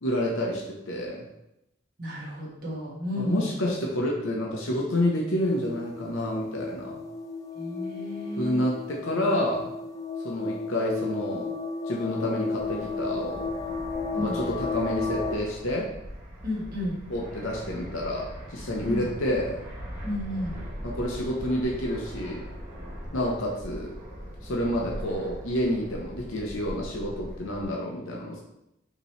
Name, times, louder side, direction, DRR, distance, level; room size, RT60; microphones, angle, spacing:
voice 1, 0.0-1.3 3.1-7.0 8.4-9.7 10.2-11.5 11.9-13.5 14.2-15.9 17.1-19.6 20.8-22.5 23.1-24.0 24.4-28.4, left 1 dB, 70° left, -2 dB, 0.8 m, -29 dB
voice 2, 2.0-3.5 7.5-8.6 14.1-14.4 16.4-17.0 18.8-19.1 20.0-20.6, left 1 dB, 45° right, -6 dB, 1.4 m, -32 dB
sound 1, 5.4-15.4, left 3 dB, 15° left, 0.4 m, -33 dB
Fixed-wing aircraft airplane, 12.6-27.7, equal, 10° right, 1.0 m, -40 dB
5.3 x 3.0 x 3.1 m, 0.84 s
head